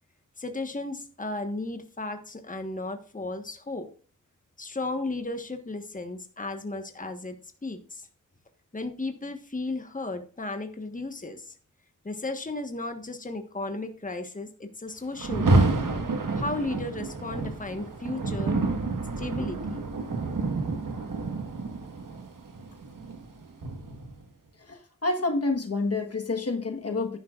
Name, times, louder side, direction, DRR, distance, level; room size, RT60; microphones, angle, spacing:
voice 1, 0.4-3.9 4.6-8.1 8.7-11.5 12.0-15.8 16.4-18.6 19.2-19.8, left 2 dB, 25° left, 1.4 m, -34 dB
Rain, 15.2-24.2, right 3 dB, 85° right, 1.7 m, -28 dB
voice 2, 24.6-27.2, left 3 dB, 50° left, 1.4 m, -28 dB
10.5 x 10.5 x 2.5 m
wide cardioid pair, 80°, 32 cm